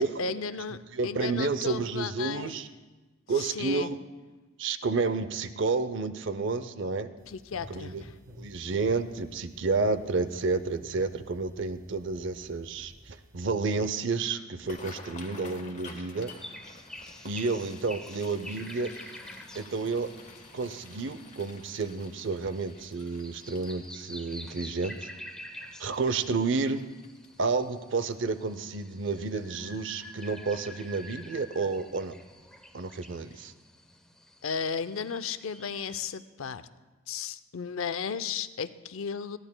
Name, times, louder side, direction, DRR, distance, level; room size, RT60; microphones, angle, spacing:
voice 1, 0.0-0.8 1.0-2.6 3.4-3.9 7.3-8.1 34.4-36.6 37.1-39.4, left 6 dB, 85° left, 13 dB, 0.5 m, -34 dB
voice 2, 0.9-2.7 3.3-4.0 4.6-7.1 7.7-8.0 8.4-16.3 17.2-18.9 19.5-20.1 20.5-25.1 25.8-26.8 27.4-32.2 32.7-33.5, right 4 dB, 65° right, 12 dB, 0.6 m, -30 dB
sound 1, 7.2-13.5, equal, 85° right, 3.3 m, -53 dB
sound 2, 14.5-27.6 28.1-28.4 28.7-29.1 29.6-29.7 30.9-31.1 31.5-31.6 32.1-32.2, left 3 dB, 35° left, 1.2 m, -51 dB
sound 3, 16.2-36.1, left 1 dB, 5° left, 0.7 m, -48 dB
20.5 x 14.5 x 2.2 m, 1.2 s
head